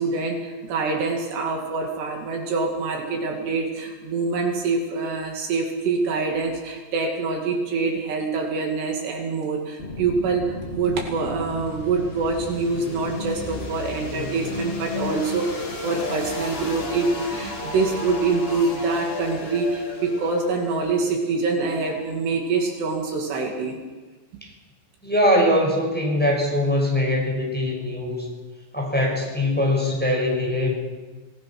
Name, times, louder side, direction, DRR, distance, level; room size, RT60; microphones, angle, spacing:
voice 1, 0.0-23.8, right 4 dB, 70° right, 1 dB, 4.3 m, -25 dB
sound 1, 9.8-22.6, left 3 dB, 80° left, 0.5 m, -34 dB
voice 2, 25.0-28.3 28.7-30.7, left 1 dB, ahead, -1 dB, 6.0 m, -22 dB
27.0 x 19.5 x 6.1 m, 1.3 s
omnidirectional pair, 5.1 m